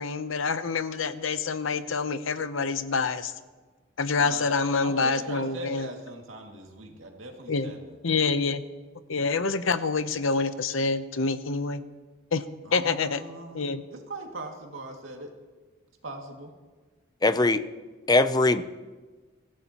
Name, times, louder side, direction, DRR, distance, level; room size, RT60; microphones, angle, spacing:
voice 1, 0.0-3.3 4.0-5.9 7.5-7.7 8.0-8.6 9.1-11.8 12.3-12.4 12.7-13.2 13.5-13.8, left 4 dB, 80° left, 12 dB, 0.8 m, -27 dB
voice 2, 4.2-8.0 12.6-15.3 16.0-16.5, right 1 dB, 85° right, 1 dB, 2.3 m, -40 dB
voice 3, 17.2-17.6 18.1-18.6, left 2 dB, 20° left, 12 dB, 0.5 m, -21 dB
24.0 x 15.0 x 3.0 m, 1.3 s
head